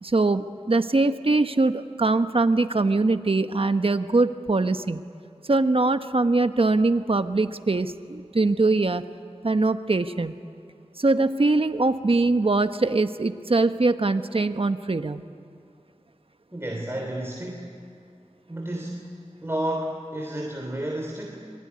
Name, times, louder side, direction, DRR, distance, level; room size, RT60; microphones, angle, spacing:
voice 1, 0.0-5.0 5.5-9.0 9.4-10.3 11.0-15.2, right 3 dB, 55° right, 9 dB, 1.2 m, -22 dB
voice 2, 16.5-17.8 18.5-21.5, right 1 dB, 20° right, 0 dB, 3.4 m, -32 dB
26.0 x 23.0 x 9.7 m, 2.5 s
wide cardioid pair, 50°, 11 cm